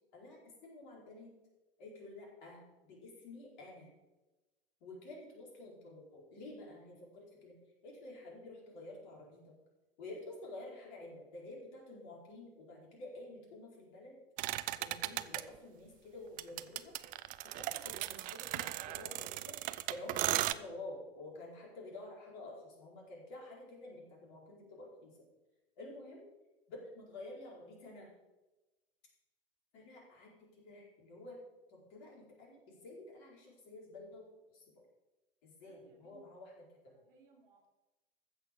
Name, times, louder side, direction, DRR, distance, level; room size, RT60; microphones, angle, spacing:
voice 1, 0.1-1.3 1.8-3.9 4.8-7.5 7.8-9.5 10.0-14.2 14.5-16.9 17.4-19.6 19.9-25.1 25.8-26.2 26.7-28.1 29.7-31.4 31.7-34.2 34.5-34.8 35.4-36.5 36.8-36.9, left 2 dB, 50° left, -2 dB, 4.7 m, -50 dB
sound 1, 14.4-15.4 16.4-20.5, right 16 dB, 25° right, 0.5 m, -36 dB
voice 2, 35.6-36.2 36.5-37.7, right 4 dB, 60° right, 0 dB, 3.5 m, -66 dB
14.5 x 6.5 x 6.6 m, 1.1 s
figure-of-eight pair, 90°, 31 cm